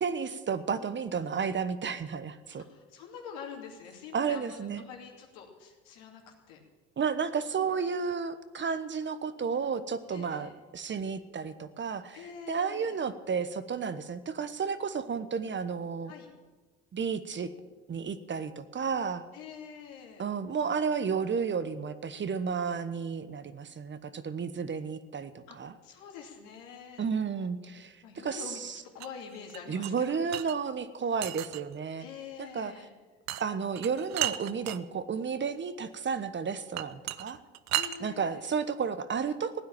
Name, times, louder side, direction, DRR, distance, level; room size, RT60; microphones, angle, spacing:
voice 1, 0.0-2.6 4.1-4.8 7.0-16.1 16.9-17.5 17.9-19.3 20.2-25.7 27.0-28.8 29.7-32.1 32.4-32.7 33.4-37.4 38.0-39.6, right 6 dB, 35° right, 12 dB, 1.2 m, -32 dB
voice 2, 2.5-6.6 10.1-10.5 12.1-13.0 16.1-16.3 19.3-20.2 25.5-25.6 25.8-27.1 28.0-30.2 32.0-32.9 37.7-38.4, left 6 dB, 80° left, 1 dB, 3.0 m, -46 dB
sound 1, 29.0-30.6 31.2-31.8 33.3-33.4 33.8-34.8 36.8-38.0, right 14 dB, 60° right, 0.8 m, -34 dB
16.0 x 9.3 x 8.9 m, 1.3 s
hypercardioid pair, 65°, 31 cm